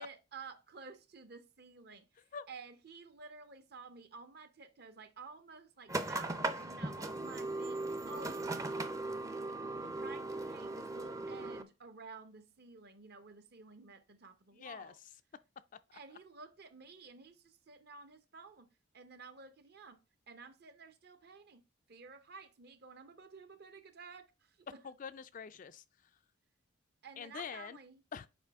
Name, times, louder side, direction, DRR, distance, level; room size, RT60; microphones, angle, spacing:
voice 1, 0.0-2.1 2.5-8.7 9.9-15.0 15.9-24.8 27.0-28.0, right 4 dB, 55° right, 0.9 m, -52 dB
sound 1, 5.9-11.6, right 2 dB, 15° right, 0.5 m, -38 dB
voice 2, 14.5-15.0 24.8-25.8 27.2-27.8 28.1-28.3, left 6 dB, 40° left, 0.3 m, -45 dB
7.2 x 4.9 x 3.5 m
head